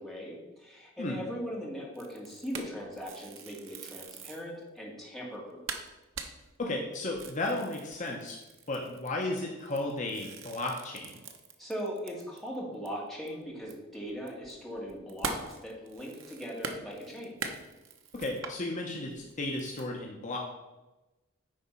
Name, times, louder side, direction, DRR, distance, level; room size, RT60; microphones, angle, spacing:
voice 1, 0.0-5.8 11.6-17.3, equal, ahead, -4 dB, 1.9 m, -39 dB
sound 1, 2.0-4.5 5.0-5.1 5.3-5.4 5.7-12.6 12.9-13.0 13.3-18.6 19.1-19.9, right 4 dB, 65° right, 0.9 m, -42 dB
voice 2, 6.6-8.4 8.7-11.1 18.1-20.4, left 2 dB, 35° left, 0 dB, 0.9 m, -34 dB
9.8 x 4.2 x 5.7 m, 1.1 s
head